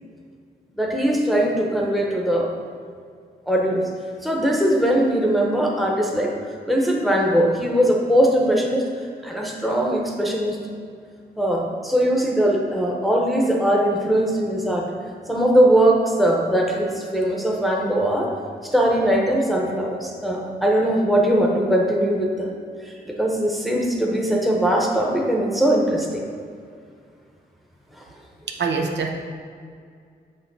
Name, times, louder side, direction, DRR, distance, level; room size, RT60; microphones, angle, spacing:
voice 1, 0.8-2.5 3.5-3.8 4.2-6.3 6.7-8.9 9.2-10.6 11.4-14.9 15.3-18.3 18.6-22.5 22.8-26.2, right 1 dB, ahead, -1 dB, 0.8 m, -20 dB
voice 2, 28.6-29.1, right 4 dB, 80° right, 2 dB, 0.8 m, -23 dB
7.5 x 3.1 x 6.0 m, 2.2 s
wide cardioid pair, 155°, 18 cm